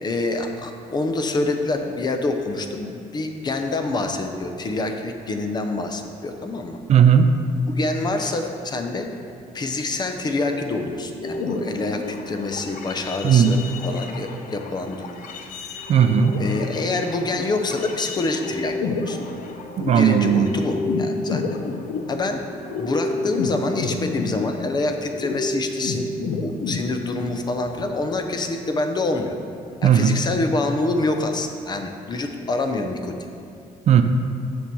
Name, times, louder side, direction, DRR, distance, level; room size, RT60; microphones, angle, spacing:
voice 1, 0.0-6.8 7.8-9.1 9.5-15.2 16.4-19.2 19.8-21.4 22.1-22.4 22.8-29.3 29.8-33.3, left 2 dB, 30° left, 5 dB, 0.7 m, -26 dB
voice 2, 6.9-7.3 13.2-13.5 15.9-16.4 19.8-20.5 29.8-30.2 33.9-34.0, right 8 dB, 45° right, 8 dB, 0.5 m, -16 dB
sound 1, 11.2-27.3 27.7-28.0, left 3 dB, 65° left, 0.7 m, -30 dB
7.1 x 6.2 x 5.4 m, 2.4 s
cardioid pair, 140°, 15 cm